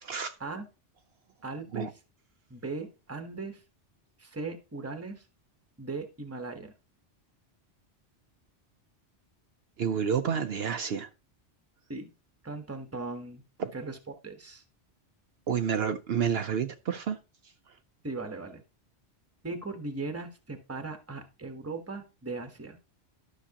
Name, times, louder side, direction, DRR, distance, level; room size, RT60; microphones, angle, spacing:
voice 1, 0.0-0.3 1.7-1.9 9.8-11.1 13.6-13.7 15.5-17.2, right 7 dB, 65° right, 7 dB, 0.8 m, -29 dB
voice 2, 1.4-1.9 2.5-3.6 4.2-5.2 5.8-6.7 11.9-12.1 12.4-13.4 13.7-14.0 14.2-14.6 18.0-18.6 19.4-22.8, right 3 dB, 15° right, 6 dB, 1.0 m, -38 dB
12.5 x 5.8 x 2.8 m, 0.31 s
omnidirectional pair, 1.2 m